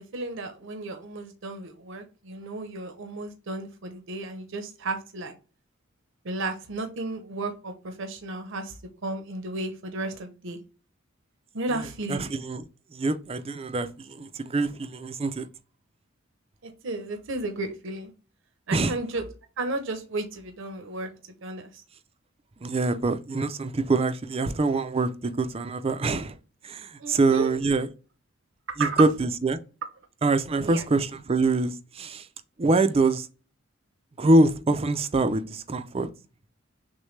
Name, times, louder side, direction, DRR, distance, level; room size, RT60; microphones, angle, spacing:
voice 1, 0.0-5.3 6.2-8.7 9.0-10.6 11.5-12.3 16.6-18.1 18.7-19.2 19.6-21.1 21.4-21.7 27.0-27.5 28.8-28.9 30.6-30.8, right 2 dB, 65° right, 0.7 m, -33 dB
voice 2, 11.7-15.5 18.7-19.0 22.6-26.4 26.6-27.9 28.8-29.6 30.2-32.3 32.6-33.3 34.2-36.1, right 2 dB, 30° right, 0.4 m, -25 dB
6.4 x 2.2 x 3.2 m
head